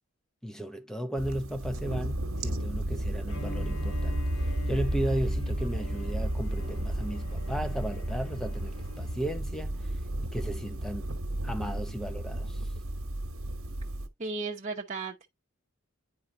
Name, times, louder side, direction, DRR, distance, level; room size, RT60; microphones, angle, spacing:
voice 1, 0.4-9.9 10.2-11.1 11.4-12.6, equal, 5° left, 0.7 m, -35 dB
sound 1, 1.2-14.1, right 1 dB, 80° right, 1.1 m, -33 dB
Bowed string instrument, 3.3-9.3, left 1 dB, 80° left, 1.2 m, -46 dB
voice 2, 14.2-15.3, right 3 dB, 30° right, 0.9 m, -35 dB
9.7 x 4.5 x 2.7 m
head